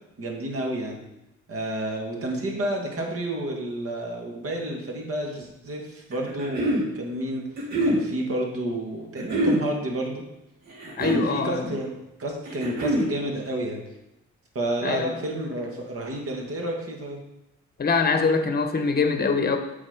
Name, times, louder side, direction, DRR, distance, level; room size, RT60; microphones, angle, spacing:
voice 1, 0.2-1.0 1.5-7.5 7.8-10.2 11.0-13.8 14.6-17.2, right 1 dB, 50° right, 1 dB, 1.8 m, -30 dB
sound 1, 6.1-6.8 7.6-8.0 9.2-9.6 10.7-11.3 12.5-13.1, right 1 dB, 65° right, 2.8 m, -24 dB
voice 2, 11.0-11.7 14.8-15.1 17.8-19.6, left 4 dB, 30° left, 7 dB, 1.0 m, -23 dB
7.2 x 4.2 x 5.1 m, 0.91 s
cardioid pair, 90°, 30 cm